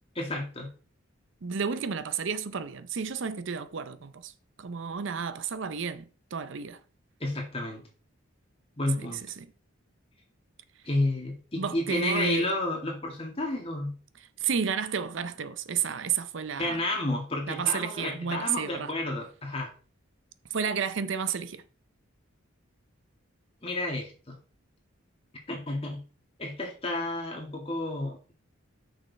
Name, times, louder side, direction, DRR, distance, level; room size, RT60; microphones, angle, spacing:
voice 1, 0.2-0.7 7.2-7.8 8.8-9.2 10.8-14.0 16.6-19.7 23.6-24.4 25.5-26.0 26.4-28.3, left 1 dB, 25° left, 2.1 m, -31 dB
voice 2, 1.4-4.3 4.6-6.0 6.3-6.8 11.5-12.5 14.4-16.8 17.5-18.9 20.5-21.6, right 6 dB, 65° right, 0.5 m, -31 dB
6.5 x 6.3 x 4.1 m
head